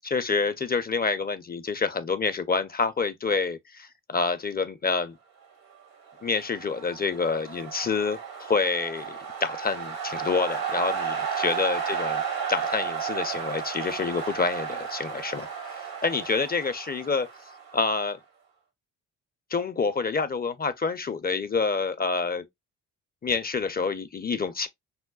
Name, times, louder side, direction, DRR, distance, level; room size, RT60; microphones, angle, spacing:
voice 1, 0.0-5.2 6.2-12.2 12.5-15.5 15.7-17.3 17.7-18.2 19.5-22.4 23.2-24.7, left 4 dB, 25° left, 0.5 m, -27 dB
sound 1, 6.1-18.0, right 7 dB, 80° right, 1.3 m, -33 dB
5.6 x 2.1 x 2.2 m
supercardioid pair, 50°, 36 cm